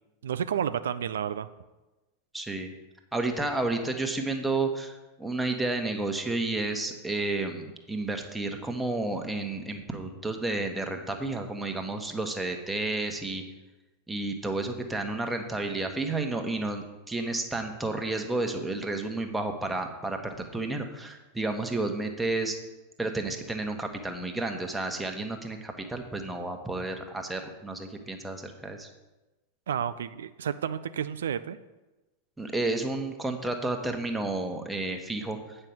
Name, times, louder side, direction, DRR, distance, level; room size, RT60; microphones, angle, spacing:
voice 1, 0.2-1.5 29.7-31.6, right 8 dB, 65° right, 12 dB, 0.4 m, -31 dB
voice 2, 2.3-2.7 3.1-13.4 14.1-22.6 23.0-28.9 32.4-35.6, right 2 dB, 5° right, 4 dB, 1.2 m, -31 dB
8.8 x 5.5 x 7.5 m, 1.1 s
figure-of-eight pair, 90°, 0 cm